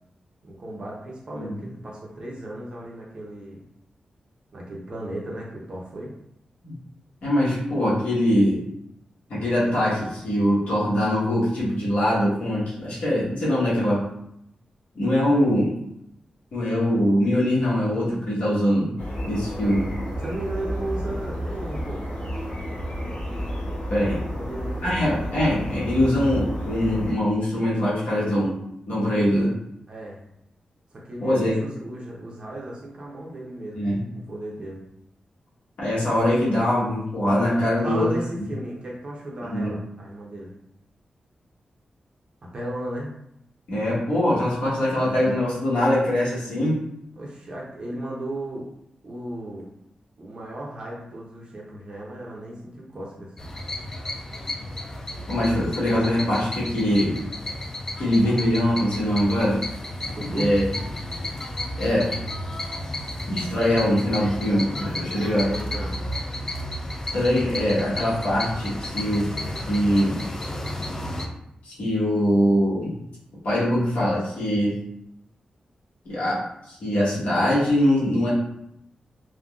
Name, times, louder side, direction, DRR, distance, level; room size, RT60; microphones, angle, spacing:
voice 1, 0.4-3.6 4.5-6.1 20.2-22.1 24.3-25.1 29.9-30.2 30.9-33.8 34.3-34.9 37.8-40.5 42.4-43.1 47.2-48.7 49.0-49.7 50.2-53.3 60.1-60.5 65.3-66.0, right 1 dB, 40° right, -4 dB, 0.5 m, -35 dB
voice 2, 7.2-8.6 9.3-14.0 14.9-15.7 16.5-18.9 19.3-19.9 23.9-24.2 24.8-28.5 28.9-29.5 31.2-31.5 33.7-34.0 35.8-38.5 39.4-39.7 43.7-46.8 55.3-57.2 58.0-59.6 60.2-60.6 61.8-62.1 63.3-65.5 67.1-69.3 69.7-70.2 71.6-72.9 73.4-74.8 76.0-76.4 76.7-78.3, equal, 80° left, -9 dB, 1.1 m, -22 dB
sound 1, 19.0-27.1, equal, 65° left, 0.8 m, -31 dB
sound 2, 53.4-71.3, left 1 dB, 20° left, 0.3 m, -32 dB
3.6 x 2.1 x 2.3 m, 0.78 s
wide cardioid pair, 170°, 2 cm